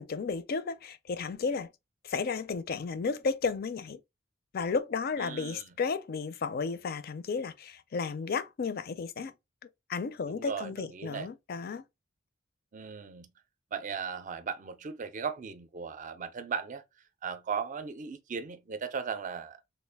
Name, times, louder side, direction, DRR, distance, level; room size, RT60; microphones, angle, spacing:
voice 1, 0.0-1.7 2.0-4.0 4.5-9.3 9.9-11.8, left 5 dB, 50° left, 0.4 m, -33 dB
voice 2, 5.2-5.7 10.3-11.3 12.7-13.3 13.7-16.8 17.2-19.7, right 6 dB, 40° right, 0.4 m, -37 dB
3.3 x 2.4 x 3.4 m
head